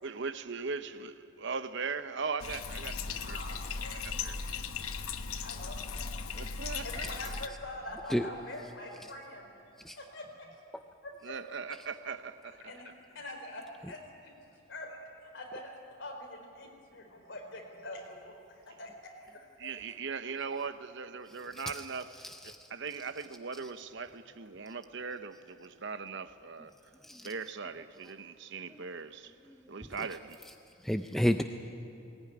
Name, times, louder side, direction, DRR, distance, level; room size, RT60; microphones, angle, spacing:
voice 1, 0.0-4.4 4.7-4.8 6.3-7.3 11.2-12.8 19.6-26.9 27.2-29.4 29.7-30.4, right 5 dB, 55° right, 0.8 m, -40 dB
Bathtub (filling or washing), 2.4-7.5, left 5 dB, 85° left, 1.0 m, -37 dB
voice 2, 3.2-4.4 5.4-6.1 6.8-10.2 10.5-10.6 11.0-11.4 12.6-14.3 14.7-15.0 15.2-19.7, left 1 dB, 55° left, 4.4 m, -45 dB
voice 3, 22.2-22.7 27.0-27.3 29.6-30.1 30.8-31.4, equal, ahead, 0.5 m, -32 dB
20.0 x 19.0 x 9.7 m
head